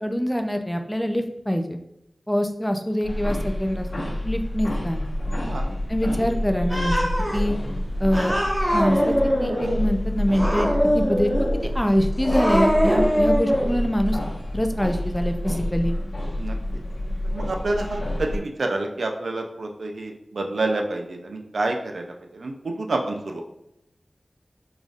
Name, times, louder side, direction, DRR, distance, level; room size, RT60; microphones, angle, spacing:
voice 1, 0.0-1.8 2.3-5.0 5.9-7.0 7.3-7.5 8.0-8.4 8.7-10.7 10.9-11.3 11.6-14.2 14.5-16.0, equal, 5° left, 5 dB, 0.4 m, -24 dB
sound 1, 3.0-18.4, left 1 dB, 70° left, 0.8 m, -28 dB
voice 2, 5.3-5.6 6.1-6.4 16.4-16.6 17.2-23.4, right 2 dB, 85° right, 2 dB, 0.5 m, -28 dB
Cat, 6.7-7.4 8.1-9.8 10.3-11.6 12.2-13.7, equal, 20° right, 0.9 m, -22 dB
4.8 x 2.6 x 2.4 m, 0.82 s
wide cardioid pair, 60°, 0 cm